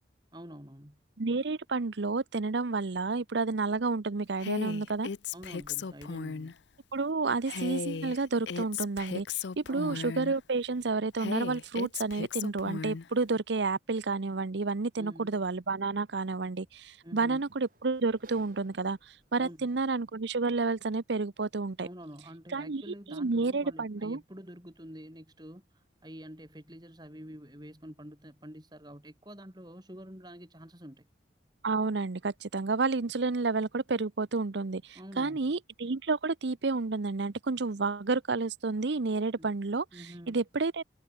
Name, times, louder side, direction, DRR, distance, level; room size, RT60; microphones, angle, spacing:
voice 1, 0.3-1.0 5.3-6.6 9.7-10.0 15.0-15.3 17.0-17.4 19.4-19.7 21.8-31.1 34.9-35.5 39.4-39.5 39.9-40.4, equal, 20° right, 4.3 m, -47 dB
voice 2, 1.2-5.1 6.9-19.0 19.3-21.9 22.5-24.2 31.6-40.8, right 3 dB, 70° right, 0.7 m, -30 dB
Female speech woman speaking, 4.4-6.5 7.5-10.4 11.2-13.1, left 6 dB, 75° left, 0.5 m, -36 dB
Sliding door, 16.0-28.6, right 2 dB, 45° right, 6.0 m, -68 dB
head